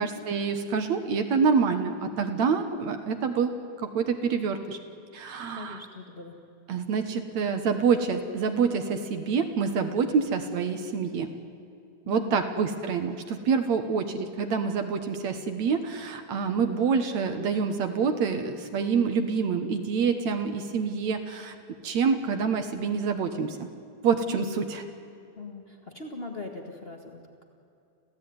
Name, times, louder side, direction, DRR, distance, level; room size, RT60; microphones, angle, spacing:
voice 1, 0.0-3.6 3.8-4.8 5.1-5.8 6.7-11.3 12.1-21.6 21.8-23.7 24.0-24.8, right 5 dB, 60° right, 7 dB, 2.1 m, -27 dB
voice 2, 5.5-6.4 12.0-12.5 13.8-13.9 24.3-24.6 25.3-27.4, left 4 dB, 50° left, 2 dB, 0.7 m, -40 dB
27.5 x 16.0 x 9.5 m, 2.7 s
omnidirectional pair, 4.2 m